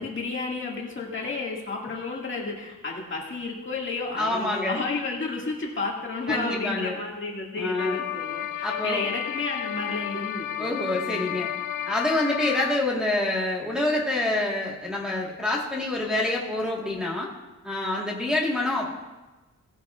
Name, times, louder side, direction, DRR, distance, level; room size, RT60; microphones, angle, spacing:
voice 1, 0.0-11.3, left 3 dB, 40° left, -2 dB, 2.0 m, -32 dB
voice 2, 4.1-4.8 6.3-6.9 7.6-8.0 8.6-9.0 10.6-11.5 11.9-17.3 17.6-18.9, left 2 dB, 5° right, -5 dB, 1.4 m, -27 dB
sound 1, 7.8-12.8, left 11 dB, 90° left, 0.6 m, -32 dB
17.5 x 10.0 x 2.4 m, 1.2 s
wide cardioid pair, 175°, 31 cm